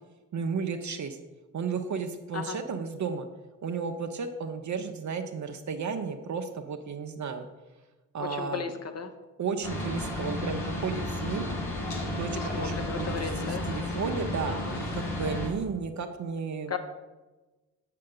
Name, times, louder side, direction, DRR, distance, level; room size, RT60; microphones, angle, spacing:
voice 1, 0.3-1.2 1.5-3.3 3.6-7.5 8.1-8.7 9.4-11.5 12.1-16.8, right 5 dB, 45° right, 6 dB, 0.7 m, -33 dB
voice 2, 8.2-9.1 12.5-13.7 14.5-14.6 16.7-16.8, left 6 dB, 40° left, 8 dB, 1.0 m, -35 dB
sound 1, 9.6-15.5, left 1 dB, 80° left, 1.6 m, -33 dB
7.5 x 6.5 x 3.8 m, 1.2 s
hypercardioid pair, 40°, 41 cm